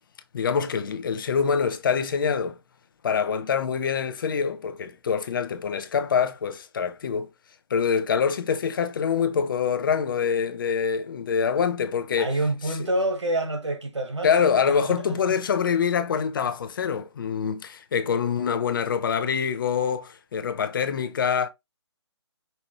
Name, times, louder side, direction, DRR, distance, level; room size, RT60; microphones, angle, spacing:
voice 1, 0.3-2.6 3.0-7.3 7.7-12.3 14.2-21.5, left 6 dB, 50° left, 0.8 m, -25 dB
voice 2, 12.2-14.3 14.6-15.1, right 1 dB, 85° right, 1.6 m, -27 dB
5.5 x 2.6 x 3.0 m
figure-of-eight pair, 150°, 15 cm